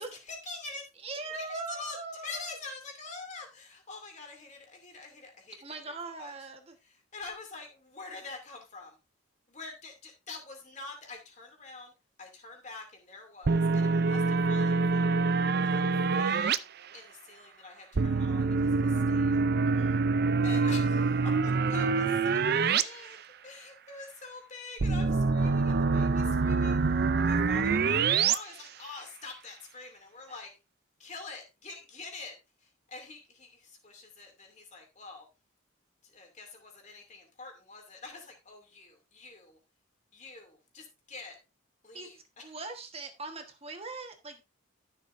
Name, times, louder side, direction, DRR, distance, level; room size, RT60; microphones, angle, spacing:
voice 1, 0.3-0.8 1.3-2.0 2.2-6.3 6.8-9.0 9.5-11.9 12.2-15.2 15.6-19.4 20.4-22.4 22.7-23.2 23.4-30.5 31.0-32.3 32.6-35.2 36.0-39.6 40.1-41.4 41.8-42.5, left 3 dB, 35° left, 2.7 m, -46 dB
voice 2, 1.0-2.6 5.6-6.8 19.6-20.1 30.3-30.4 41.9-44.4, right 3 dB, 30° right, 1.4 m, -41 dB
sound 1, 13.5-16.6 18.0-22.8 23.1-23.2 24.8-28.4, right 4 dB, 50° right, 0.5 m, -25 dB
13.0 x 7.0 x 2.6 m
head